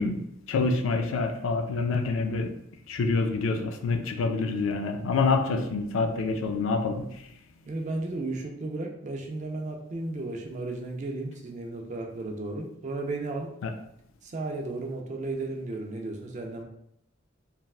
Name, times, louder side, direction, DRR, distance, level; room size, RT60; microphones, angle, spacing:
voice 1, 0.0-2.5 2.9-7.1 13.6-13.7, left 3 dB, 85° left, 6 dB, 0.3 m, -27 dB
voice 2, 7.7-13.5 14.2-16.6, right 2 dB, 40° right, 2 dB, 0.4 m, -34 dB
3.2 x 2.2 x 2.3 m, 0.76 s
head